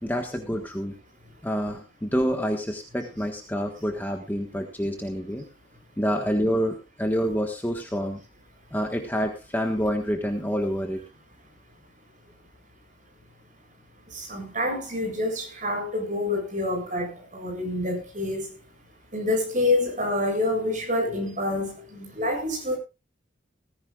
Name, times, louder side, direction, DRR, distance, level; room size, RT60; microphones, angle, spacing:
voice 1, 0.0-0.9 1.4-5.4 6.0-8.2 8.7-11.0, equal, 10° left, 1.4 m, -27 dB
voice 2, 14.1-18.6 19.1-22.8, left 2 dB, 40° right, 7.6 m, -27 dB
18.5 x 15.0 x 2.4 m
head